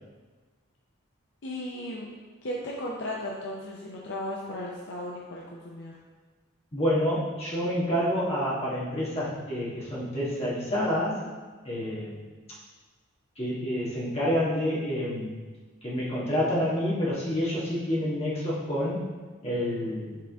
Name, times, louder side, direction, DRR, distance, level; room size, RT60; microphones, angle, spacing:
voice 1, 1.4-2.1 2.4-5.9, left 1 dB, 55° left, -3 dB, 0.6 m, -35 dB
voice 2, 6.7-11.2 11.6-12.2 13.4-15.3 15.8-19.0 19.4-20.2, equal, 30° left, -7 dB, 1.5 m, -28 dB
7.4 x 3.6 x 3.5 m, 1.4 s
head